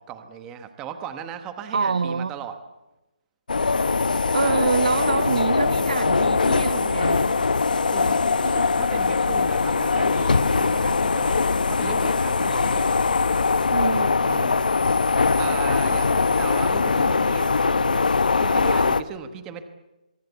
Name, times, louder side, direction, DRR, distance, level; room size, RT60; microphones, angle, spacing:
voice 1, 0.0-2.6 4.4-4.7 7.8-12.9 14.2-14.8 15.4-19.6, right 8 dB, 10° right, 1.1 m, -37 dB
voice 2, 1.7-2.3 4.3-7.3 13.7-14.2, right 5 dB, 65° right, 1.0 m, -26 dB
sound 1, 3.5-19.0, left 4 dB, 90° left, 1.1 m, -21 dB
24.5 x 23.5 x 8.2 m
hypercardioid pair, 175°, 4 cm